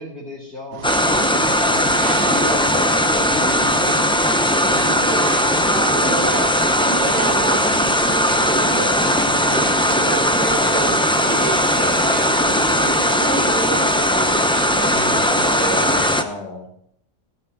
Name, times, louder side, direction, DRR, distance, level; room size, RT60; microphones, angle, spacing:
voice 1, 0.0-1.9 2.4-6.8 7.0-8.1 8.6-9.0 14.7-16.7, equal, 30° left, -6 dB, 3.7 m, -34 dB
sound 1, 0.7-16.2, right 7 dB, 90° right, 1.4 m, -32 dB
sound 2, 0.8-16.2, equal, 10° left, 0.3 m, -18 dB
voice 2, 10.4-14.3 15.0-16.1, equal, 20° right, 4 dB, 1.5 m, -35 dB
16.0 x 6.6 x 7.9 m, 0.68 s
omnidirectional pair, 1.7 m